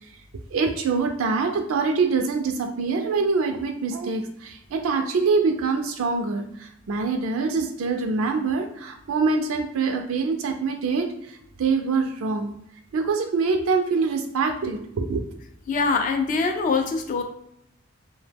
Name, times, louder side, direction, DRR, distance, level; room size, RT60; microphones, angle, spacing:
voice 1, 0.5-12.6 12.9-15.2, right 4 dB, 75° right, 5 dB, 0.4 m, -25 dB
voice 2, 15.7-17.2, left 4 dB, 40° left, 4 dB, 0.3 m, -23 dB
2.8 x 2.1 x 3.3 m, 0.76 s
head